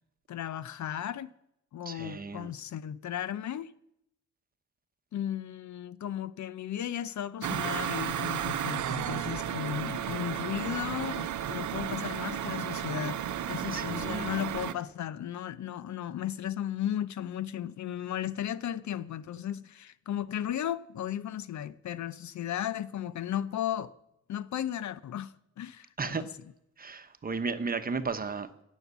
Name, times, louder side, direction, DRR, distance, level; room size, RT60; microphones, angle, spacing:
voice 1, 0.3-1.4 1.7-3.7 5.1-13.2 13.5-23.9 24.3-26.3, left 10 dB, 75° left, 0.7 m, -35 dB
voice 2, 1.9-2.5 13.7-14.4 26.0-26.2 26.8-28.6, right 4 dB, 30° right, 1.0 m, -34 dB
sound 1, 7.4-14.7, right 10 dB, 85° right, 0.9 m, -33 dB
17.0 x 6.5 x 8.1 m
wide cardioid pair, 140°, 29 cm